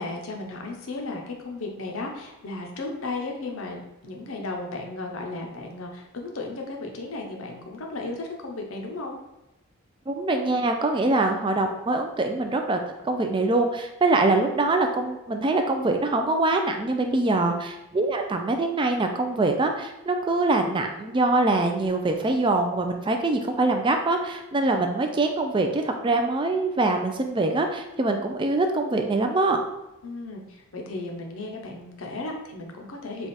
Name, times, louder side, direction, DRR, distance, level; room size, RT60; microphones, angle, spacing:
voice 1, 0.0-9.2 17.0-17.7 30.0-33.3, left 2 dB, 65° left, 1 dB, 0.7 m, -35 dB
voice 2, 10.1-29.6, right 2 dB, 20° right, 4 dB, 0.3 m, -24 dB
3.4 x 2.4 x 4.1 m, 0.95 s
head